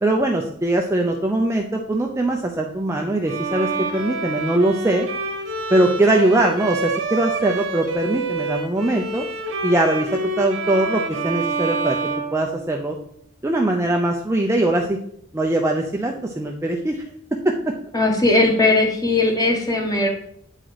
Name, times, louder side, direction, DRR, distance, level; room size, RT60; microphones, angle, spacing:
voice 1, 0.0-5.1 5.7-9.3 9.6-12.0 12.3-13.0 13.4-15.0 15.3-17.0 17.4-17.5, right 1 dB, 15° right, 1 dB, 0.5 m, -21 dB
Bowed string instrument, 3.3-13.1, right 3 dB, 65° right, 1.1 m, -27 dB
voice 2, 17.9-20.1, left 2 dB, 20° left, 2 dB, 1.3 m, -18 dB
8.8 x 4.7 x 4.0 m, 0.66 s
head